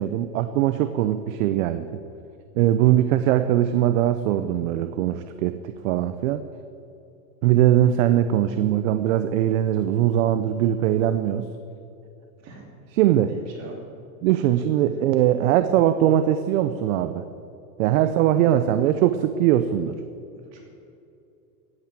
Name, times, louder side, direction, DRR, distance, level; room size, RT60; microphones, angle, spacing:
voice 1, 0.0-1.9 2.6-6.4 7.4-11.5 13.0-13.4 14.2-17.3 17.8-19.9, right 11 dB, 55° right, 10 dB, 0.8 m, -21 dB
voice 2, 12.4-13.8 18.4-18.6 20.3-20.6, right 3 dB, 35° right, -1 dB, 2.9 m, -44 dB
16.0 x 9.0 x 7.7 m, 2.7 s
supercardioid pair, 135°, 47 cm